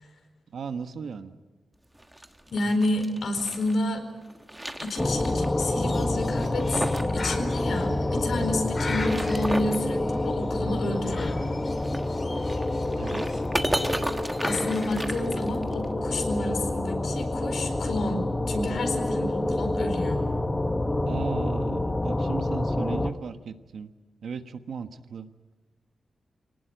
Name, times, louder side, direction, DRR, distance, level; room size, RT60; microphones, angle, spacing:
voice 1, 0.5-1.4 12.9-13.4 21.1-23.9 24.2-25.3, right 6 dB, 75° right, 9 dB, 1.3 m, -36 dB
sound 1, 1.9-3.8 4.2-5.5 5.7-5.8 6.3-7.2 7.4-7.5 8.8-9.8 11.8-15.8, right 1 dB, 10° right, 1.3 m, -34 dB
voice 2, 2.5-4.0 4.8-6.9 7.1-11.5 14.4-20.2, left 2 dB, 70° left, 6 dB, 4.2 m, -30 dB
sound 2, 5.0-23.1, left 1 dB, 15° left, 0.9 m, -28 dB
Bird, 5.1-14.9, left 3 dB, 35° left, 2.5 m, -42 dB
25.5 x 18.5 x 9.1 m, 1.3 s
wide cardioid pair, 155°, 0 cm